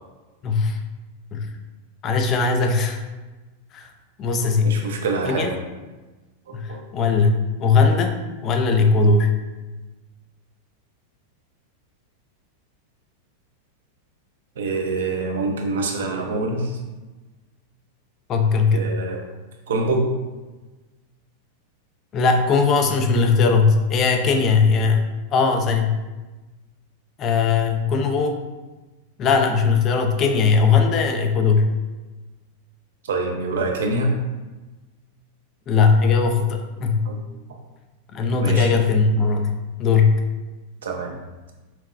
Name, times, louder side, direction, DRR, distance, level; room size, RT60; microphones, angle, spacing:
voice 1, 0.4-0.8 1.3-1.5 2.0-3.0 3.7-3.9 4.2-4.8 5.2-5.5 6.5-9.3 18.3-18.9 22.1-26.0 27.2-28.4 29.2-31.7 35.7-37.0 38.1-39.5 39.8-40.2, left 4 dB, 30° left, 4 dB, 0.4 m, -19 dB
voice 2, 4.6-5.5 6.5-6.8 14.6-16.8 18.7-19.2 19.7-20.1 33.1-34.1 37.0-37.2 38.4-38.7 40.8-41.2, right 3 dB, 90° right, 2 dB, 0.6 m, -25 dB
5.8 x 2.1 x 2.4 m, 1.2 s
supercardioid pair, 135°, 0 cm